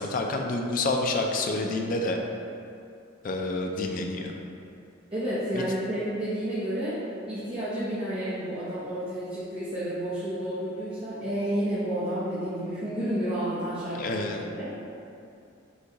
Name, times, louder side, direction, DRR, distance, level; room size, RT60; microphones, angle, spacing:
voice 1, 0.0-2.2 3.2-4.3 5.5-5.6 13.9-14.4, left 2 dB, 45° left, 2 dB, 0.4 m, -28 dB
voice 2, 5.1-6.9 7.3-14.2 14.6-14.7, right 1 dB, 30° right, -12 dB, 0.8 m, -30 dB
6.3 x 2.3 x 2.9 m, 2.5 s
head